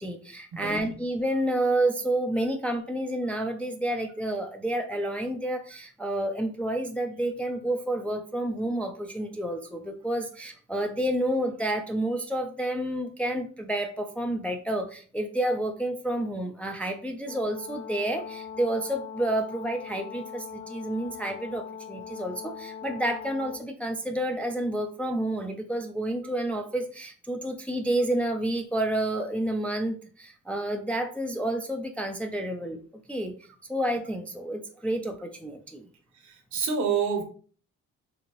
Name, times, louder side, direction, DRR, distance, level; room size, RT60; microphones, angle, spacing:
voice 1, 0.0-32.8 33.1-33.3 33.7-35.9, right 1 dB, 5° left, 4 dB, 0.3 m, -29 dB
voice 2, 0.6-0.9 36.2-37.2, right 6 dB, 70° right, 5 dB, 0.9 m, -28 dB
Brass instrument, 17.3-23.6, left 7 dB, 35° left, 1.0 m, -41 dB
2.8 x 2.7 x 2.9 m, 0.41 s
cardioid pair, 90°, 30 cm